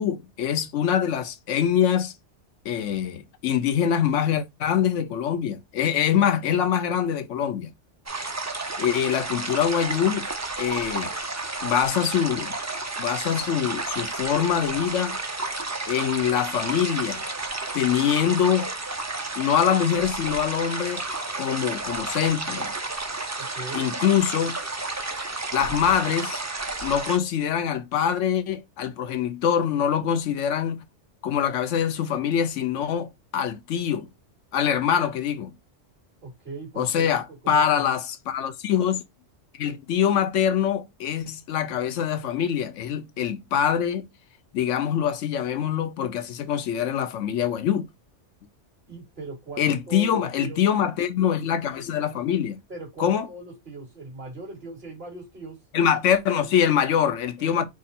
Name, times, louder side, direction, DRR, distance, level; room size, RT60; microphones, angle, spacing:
voice 1, 0.0-2.1 2.6-7.7 8.8-10.3 10.6-11.1 11.6-12.5 13.0-15.2 15.9-17.2 17.7-18.7 19.4-21.0 21.4-22.7 23.7-24.6 25.5-26.4 26.8-30.8 31.2-34.1 34.5-35.5 36.8-39.0 39.5-44.1 44.5-47.9 49.6-52.6 53.0-53.3 55.7-57.6, left 9 dB, 90° left, 1.0 m, -24 dB
sound 1, 8.1-27.2, right 3 dB, 25° right, 0.3 m, -31 dB
voice 2, 23.4-23.9 36.2-37.1 37.4-37.8 48.9-50.6 52.7-55.6 57.4-57.7, right 3 dB, 50° right, 2.9 m, -39 dB
4.5 x 2.5 x 4.2 m
omnidirectional pair, 1.2 m